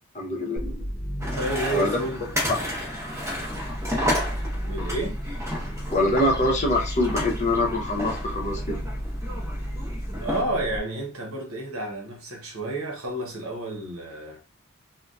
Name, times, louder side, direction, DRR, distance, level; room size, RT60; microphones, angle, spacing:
voice 1, 0.1-0.9 1.7-2.0 5.9-8.8, left 1 dB, 35° left, 0.7 m, -24 dB
sound 1, 0.6-10.8, equal, 5° left, 0.4 m, -33 dB
sound 2, 1.2-10.4, equal, 15° right, 0.8 m, -32 dB
voice 2, 1.3-2.3 4.6-5.2 10.2-14.4, right 1 dB, 75° right, 0.8 m, -30 dB
3.9 x 2.1 x 2.3 m
head